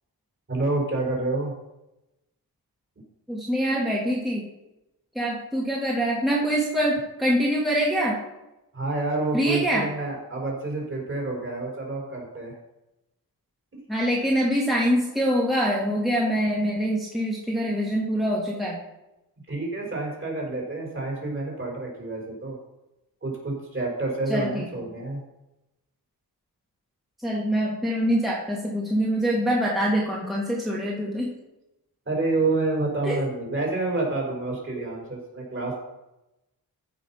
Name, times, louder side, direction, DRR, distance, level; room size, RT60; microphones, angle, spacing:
voice 1, 0.5-1.5 8.7-12.5 19.5-22.5 23.2-25.2 32.1-35.8, right 2 dB, 30° right, -2 dB, 4.5 m, -28 dB
voice 2, 3.3-4.4 5.2-8.2 9.3-9.9 13.9-18.8 24.3-24.7 27.2-31.3 33.0-33.2 34.8-34.9, equal, ahead, -5 dB, 2.1 m, -24 dB
14.5 x 5.9 x 5.7 m, 0.94 s
wide cardioid pair, 135°, 38 cm